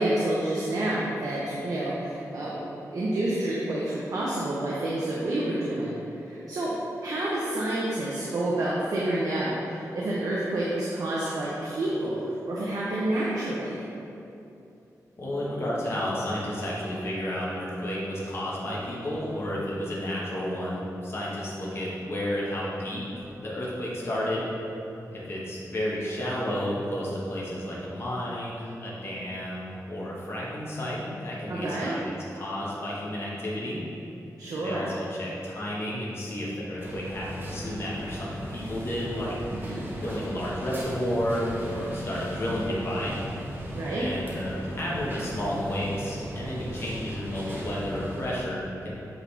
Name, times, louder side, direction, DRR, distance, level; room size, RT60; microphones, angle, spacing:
voice 1, 0.0-6.7 7.0-12.2 12.4-13.8 31.5-31.9 34.4-34.9 39.6-39.8 43.7-44.1, right 1 dB, 65° right, -7 dB, 0.8 m, -29 dB
voice 2, 15.2-24.5 25.1-33.8 34.6-39.3 40.0-43.2 43.9-48.9, equal, 40° left, -6 dB, 1.3 m, -32 dB
sound 1, 36.8-48.4, equal, 30° right, 0.9 m, -37 dB
8.0 x 3.9 x 3.4 m, 2.8 s
wide cardioid pair, 155°, 6 cm